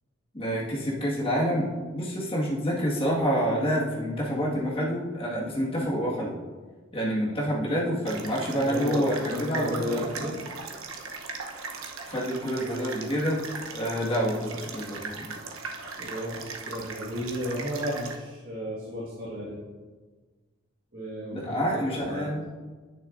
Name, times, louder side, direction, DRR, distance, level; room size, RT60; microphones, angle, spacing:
voice 1, 0.3-6.3 6.9-10.4 12.0-13.4 13.7-15.4 21.3-22.5, equal, 25° left, -4 dB, 1.9 m, -28 dB
sound 1, 8.1-18.2, right 4 dB, 85° right, 1.0 m, -39 dB
voice 2, 8.5-10.3 16.0-19.6 20.9-22.3, equal, 45° right, -7 dB, 1.8 m, -33 dB
10.0 x 9.0 x 2.6 m, 1.4 s
head